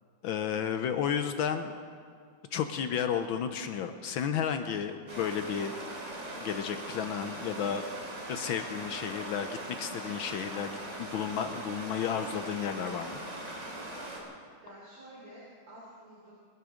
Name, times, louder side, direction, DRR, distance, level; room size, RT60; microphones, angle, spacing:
voice 1, 0.2-1.7 2.5-5.7 6.4-7.8 8.3-13.2, left 8 dB, 70° left, 8 dB, 1.4 m, -32 dB
Stream, 5.1-14.2, right 1 dB, 40° right, 3.1 m, -41 dB
voice 2, 14.6-16.3, right 1 dB, 75° right, -6 dB, 4.3 m, -50 dB
28.0 x 9.9 x 5.0 m, 2.2 s
omnidirectional pair, 2.4 m